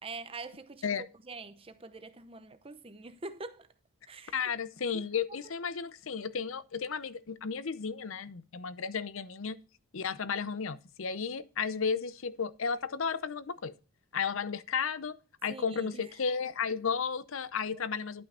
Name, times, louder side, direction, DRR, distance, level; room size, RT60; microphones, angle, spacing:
voice 1, 0.0-3.7 4.1-4.4 4.9-5.0 15.5-16.1 16.7-16.8, right 3 dB, 25° right, 0.7 m, -45 dB
voice 2, 4.3-9.6 9.9-13.7 14.1-15.2 15.4-18.3, left 6 dB, 65° left, 0.6 m, -33 dB
11.5 x 5.7 x 4.3 m
head